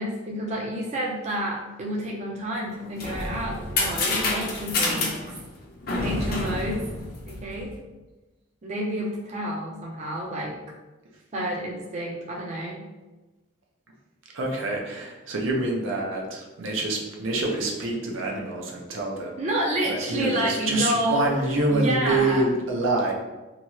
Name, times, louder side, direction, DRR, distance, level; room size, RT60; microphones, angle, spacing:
voice 1, 0.0-5.2 6.0-6.9 7.3-7.8 8.6-10.5 11.3-12.9 19.4-21.3 21.7-22.4, right 1 dB, 35° right, -2 dB, 0.4 m, -29 dB
sound 1, 2.7-7.7, left 2 dB, 50° left, 0.6 m, -28 dB
voice 2, 14.3-19.3 19.9-23.1, right 2 dB, 85° right, 0 dB, 0.5 m, -26 dB
2.8 x 2.3 x 2.9 m, 1.1 s
head